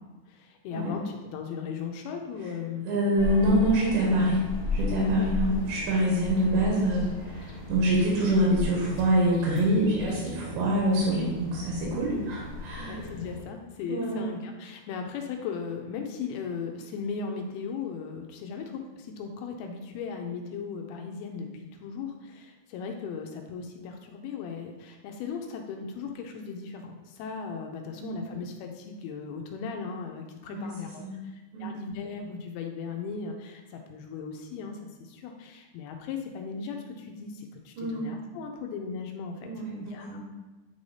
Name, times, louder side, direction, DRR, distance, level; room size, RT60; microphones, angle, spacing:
voice 1, 0.3-2.9 5.1-5.3 9.9-10.2 12.1-12.3 12.9-39.5 39.8-40.3, left 5 dB, 80° left, 3 dB, 2.4 m, -37 dB
voice 2, 2.9-4.4 4.7-13.0 13.9-14.2 27.8-28.1 30.5-30.7 31.0-31.2 31.5-31.7 37.8-38.1 39.4-40.3, right 1 dB, 90° right, -4 dB, 3.6 m, -25 dB
sound 1, 3.2-13.4, left 4 dB, 65° left, 1.5 m, -36 dB
9.5 x 3.2 x 4.1 m, 1.2 s
omnidirectional pair, 4.8 m